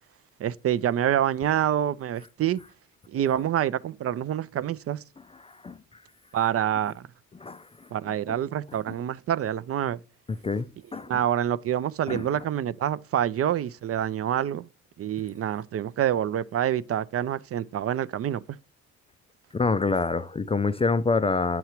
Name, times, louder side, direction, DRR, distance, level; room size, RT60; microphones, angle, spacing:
voice 1, 0.4-2.6 3.1-5.0 6.3-7.1 7.9-10.0 11.1-14.7 15.0-18.4, right 10 dB, 50° right, 0.4 m, -27 dB
voice 2, 5.4-5.8 7.4-7.7 8.3-8.4 10.3-11.1 12.1-12.2 19.5-21.6, left 4 dB, 20° left, 0.3 m, -26 dB
7.9 x 5.8 x 2.9 m
cardioid pair, 90°, 30 cm